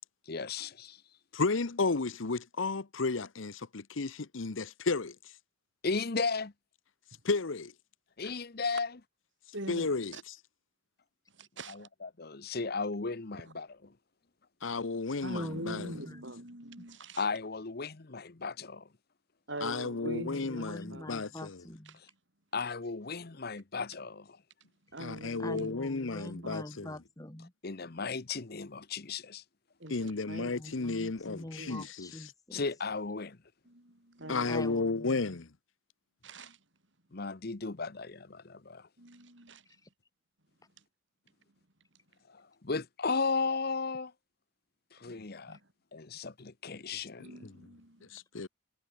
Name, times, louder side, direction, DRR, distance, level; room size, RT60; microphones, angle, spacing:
voice 1, 0.3-1.0 5.8-6.5 8.2-8.9 11.7-13.7 17.2-18.9 22.5-24.4 27.6-29.4 32.5-33.4 37.1-38.9 42.3-44.1 44.9-45.6 45.9-47.3, left 4 dB, 50° left, 1.0 m, -35 dB
voice 2, 1.3-5.1 7.2-7.7 9.7-10.1 14.6-15.9 19.6-21.6 25.0-26.9 29.9-32.1 34.3-35.5 47.4-47.5 48.1-48.5, left 3 dB, 75° left, 0.9 m, -33 dB
voice 3, 9.5-10.2 11.3-11.9 13.4-13.5 15.2-17.3 19.5-21.1 21.9-22.0 24.9-25.7 26.2-26.9 29.8-30.9 31.6-31.8 33.6-34.5 36.2-36.6 39.0-39.7 40.8-40.9 45.1-45.2 45.5-45.7 47.2-48.2, right 1 dB, 65° right, 7.2 m, -44 dB
voice 4, 15.3-16.2 16.8-16.9 20.1-22.0 25.4-27.5 30.4-32.6 34.5-35.4 39.6-39.9 45.5-45.6, left 1 dB, 20° left, 1.3 m, -44 dB
head